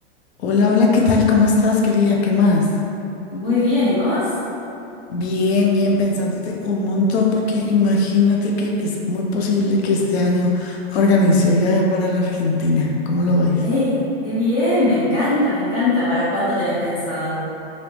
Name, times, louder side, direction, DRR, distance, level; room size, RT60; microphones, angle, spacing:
voice 1, 0.4-2.8 5.1-13.7, left 3 dB, 75° left, -1 dB, 0.6 m, -18 dB
voice 2, 3.3-4.3 13.6-17.4, left 2 dB, 45° left, -11 dB, 1.4 m, -20 dB
3.3 x 2.6 x 2.9 m, 2.8 s
supercardioid pair, 145°, 32 cm